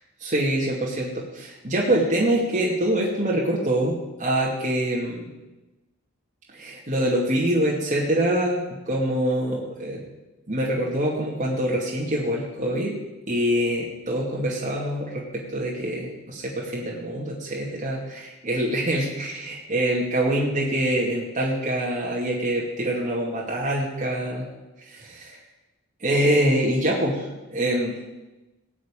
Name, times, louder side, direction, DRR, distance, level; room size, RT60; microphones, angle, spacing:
voice 1, 0.2-5.3 6.5-10.0 10.5-12.9 13.3-24.4 24.9-25.4 26.0-27.2 27.5-27.9, right 1 dB, 35° right, -4 dB, 2.4 m, -25 dB
18.0 x 6.2 x 9.1 m, 1.1 s
head